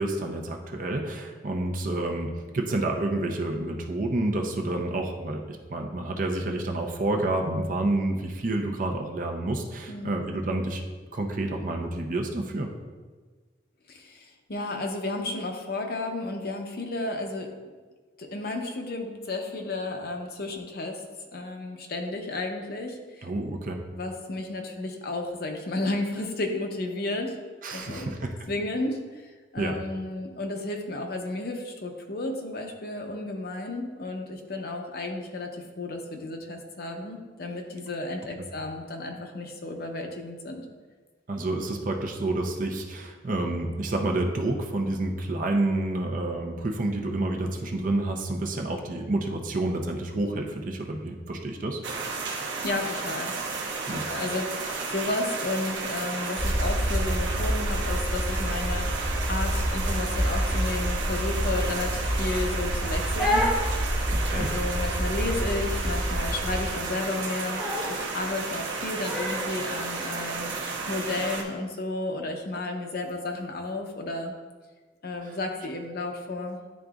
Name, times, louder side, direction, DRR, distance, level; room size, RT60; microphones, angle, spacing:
voice 1, 0.0-10.8 11.1-12.7 23.2-23.8 27.6-28.3 29.6-29.8 38.4-38.5 41.3-51.8 53.9-54.0 64.1-64.5 75.2-75.4, right 2 dB, 45° right, 3 dB, 0.6 m, -29 dB
voice 2, 9.9-10.3 13.9-17.5 18.2-21.0 21.3-23.3 23.9-27.4 27.7-28.1 28.5-40.7 52.6-53.3 53.9-63.5 64.3-70.5 70.9-74.3 75.0-76.6, left 2 dB, 55° left, 3 dB, 0.7 m, -32 dB
sound 1, 51.8-71.4, right 4 dB, 80° right, 0.9 m, -33 dB
sound 2, 56.4-66.6, equal, 20° right, 1.2 m, -28 dB
Crying sobbing, 62.8-69.7, left 1 dB, ahead, 0.8 m, -32 dB
10.5 x 3.8 x 2.4 m, 1.4 s
head